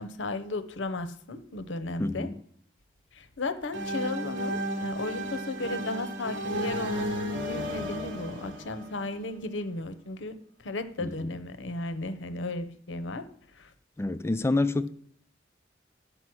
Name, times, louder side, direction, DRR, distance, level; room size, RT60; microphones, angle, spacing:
voice 1, 0.0-2.3 3.1-10.3 10.6-13.3 13.6-13.7, left 2 dB, 90° left, 0.8 m, -35 dB
voice 2, 2.0-2.4 11.0-11.3 14.0-14.9, left 2 dB, 15° left, 0.3 m, -28 dB
sound 1, 3.7-9.5, right 1 dB, 85° right, 1.3 m, -33 dB
11.0 x 5.2 x 6.1 m
head